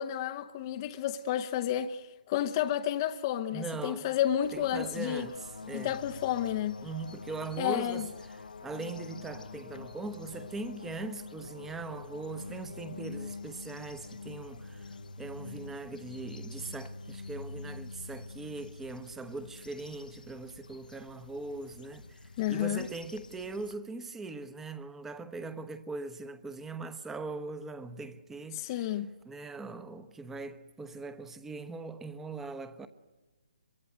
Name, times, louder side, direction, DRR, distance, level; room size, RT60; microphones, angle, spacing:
voice 1, 0.0-5.3 5.7-6.8 7.6-8.1 22.4-22.9 28.5-29.1, left 11 dB, 30° left, 0.8 m, -31 dB
voice 2, 3.5-4.1 4.5-6.0 6.8-8.1 8.4-28.9 29.2-32.9, right 3 dB, 5° right, 1.0 m, -41 dB
sound 1, 4.4-23.7, left 3 dB, 75° left, 1.1 m, -46 dB
25.0 x 23.0 x 9.4 m
figure-of-eight pair, 150°, 5 cm